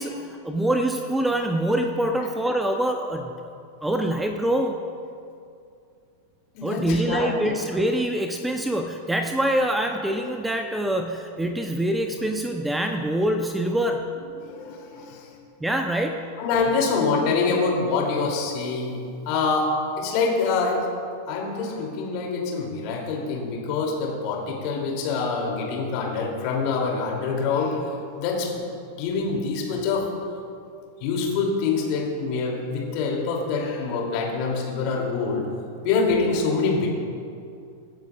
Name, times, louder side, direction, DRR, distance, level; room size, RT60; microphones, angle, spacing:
voice 1, 0.0-3.3 3.8-4.7 6.6-14.1 15.6-16.3, right 1 dB, 5° right, 5 dB, 0.7 m, -25 dB
voice 2, 6.5-7.4 14.2-15.3 16.4-19.0 19.3-19.7 20.0-20.8 21.3-28.6 29.0-30.1 31.0-35.5 35.8-36.9, left 4 dB, 45° left, -1 dB, 2.7 m, -25 dB
24.5 x 9.3 x 2.4 m, 2.4 s
figure-of-eight pair, 90°, 0 cm